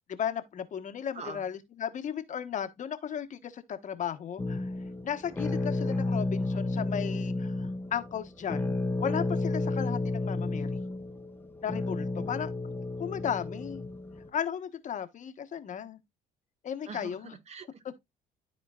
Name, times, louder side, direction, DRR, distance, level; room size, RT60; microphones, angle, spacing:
voice 1, 0.1-4.7 5.0-10.8 11.6-12.5 13.0-13.8 14.3-16.0 16.6-17.3, left 8 dB, 45° left, 1.3 m, -35 dB
voice 2, 1.1-1.4 16.9-17.9, right 4 dB, 40° right, 1.7 m, -44 dB
sound 1, 4.4-14.3, left 2 dB, 10° left, 1.1 m, -32 dB
13.0 x 4.4 x 2.4 m
cardioid pair, 110°, 17 cm